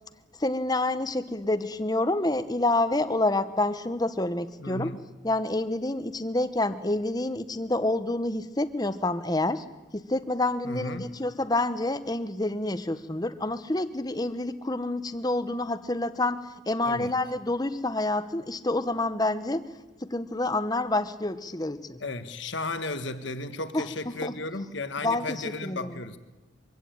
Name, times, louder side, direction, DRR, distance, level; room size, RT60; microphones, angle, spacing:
voice 1, 0.4-4.9 5.2-9.6 9.9-19.7 20.0-22.0 23.7-23.9 24.2-24.4 25.0-25.9, left 2 dB, 20° left, 12 dB, 0.9 m, -28 dB
voice 2, 4.6-5.0 10.6-11.1 16.9-17.1 22.0-26.2, left 2 dB, 65° left, 10 dB, 1.4 m, -34 dB
24.0 x 16.0 x 9.0 m, 1.1 s
head